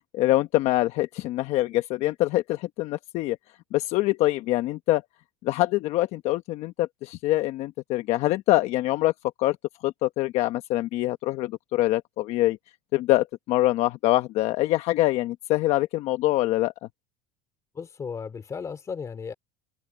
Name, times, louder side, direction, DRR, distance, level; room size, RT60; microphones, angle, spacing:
voice 1, 0.1-3.4 3.7-5.0 5.4-9.1 9.4-9.6 9.8-12.6 12.9-16.7, left 16 dB, 55° left, 1.0 m, -24 dB
voice 2, 17.7-19.3, left 6 dB, 25° left, 2.7 m, -35 dB
supercardioid pair, 135°, 13 cm